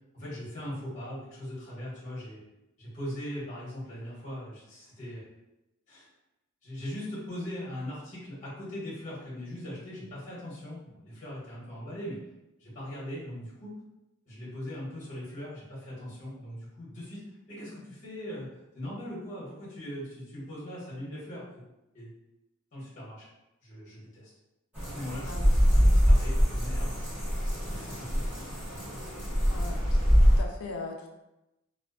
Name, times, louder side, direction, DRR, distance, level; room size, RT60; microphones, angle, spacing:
voice 1, 0.1-2.4 2.8-5.2 5.9-6.1 6.6-12.2 12.6-13.7 14.3-17.2 17.5-18.5 18.7-21.6 21.9-22.1 22.7-23.2 23.6-24.3 24.9-27.2 27.5-28.5, left 1 dB, 35° left, -8 dB, 0.9 m, -40 dB
sound 1, 24.7-30.4, equal, 10° right, 0.9 m, -24 dB
voice 2, 29.5-31.1, left 3 dB, 80° left, 2 dB, 0.4 m, -40 dB
2.4 x 2.2 x 2.3 m, 0.93 s
head